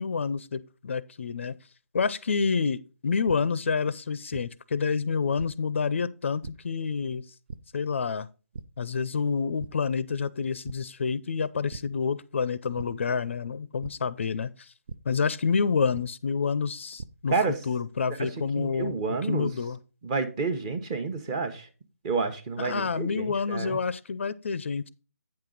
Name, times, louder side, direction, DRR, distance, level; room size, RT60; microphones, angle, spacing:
voice 1, 0.0-1.6 1.9-7.2 7.7-8.3 8.8-14.7 15.1-18.9 19.2-19.8 22.6-24.9, left 5 dB, 50° left, 0.5 m, -28 dB
sound 1, 3.2-3.3 4.3-4.4 5.4-5.5 6.4-6.5 7.5-7.6 8.5-8.6 9.1-9.3 9.6-9.7 10.6-10.7 11.7-11.8 12.8-12.9 13.8-13.9 14.9-15.0 15.9-16.0 16.7-17.1, right 4 dB, 45° right, 0.6 m, -38 dB
voice 2, 18.6-19.5 20.0-21.7 22.0-23.8, right 4 dB, 20° right, 1.0 m, -29 dB
8.7 x 5.8 x 3.9 m
figure-of-eight pair, 160°, 8 cm